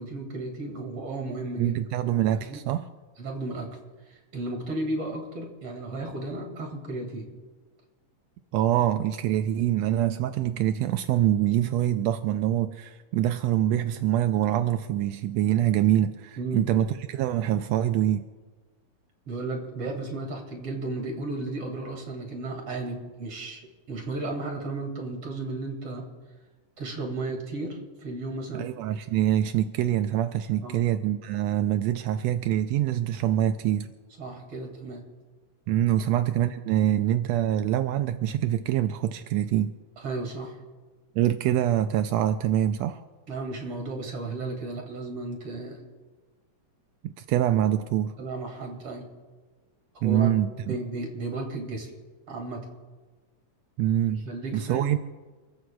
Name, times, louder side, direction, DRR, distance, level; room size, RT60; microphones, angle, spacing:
voice 1, 0.0-1.8 2.4-2.6 3.2-3.7 4.1-7.3 16.4-16.7 19.3-23.6 23.9-26.0 26.8-28.7 30.6-30.9 34.2-35.0 36.0-36.1 40.0-40.6 43.3-45.8 48.2-49.0 49.9-50.3 50.6-51.9 52.3-52.7 54.1-54.9, right 2 dB, 50° right, 2 dB, 3.0 m, -34 dB
voice 2, 1.6-2.9 8.5-18.3 28.5-33.9 35.7-39.7 41.2-43.0 47.0-48.1 50.0-50.8 53.8-54.3 54.5-55.0, right 11 dB, 85° right, 9 dB, 1.5 m, -25 dB
29.5 x 14.5 x 2.3 m, 1.3 s
omnidirectional pair, 3.6 m